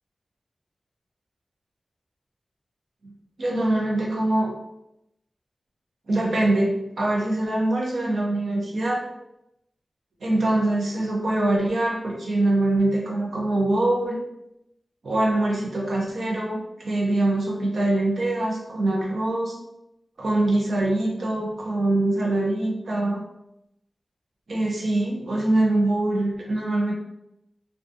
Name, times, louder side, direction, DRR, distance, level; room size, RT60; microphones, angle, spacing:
voice 1, 3.4-4.5 6.1-9.0 10.2-14.2 15.0-19.5 20.2-23.2 24.5-26.9, right 2 dB, 80° right, -2 dB, 0.6 m, -23 dB
2.4 x 2.3 x 2.6 m, 0.85 s
cardioid pair, 50°, 0 cm